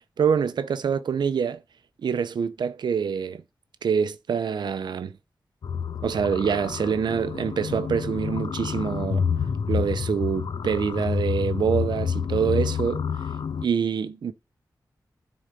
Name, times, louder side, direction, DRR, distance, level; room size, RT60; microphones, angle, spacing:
voice 1, 0.2-1.6 2.0-3.4 3.8-5.2 6.0-9.2 9.7-13.0 13.6-14.3, right 7 dB, 85° right, 0.6 m, -25 dB
sound 1, 5.6-13.6, left 6 dB, 70° left, 0.5 m, -28 dB
10.0 x 4.0 x 5.2 m
cardioid pair, 70°, 7 cm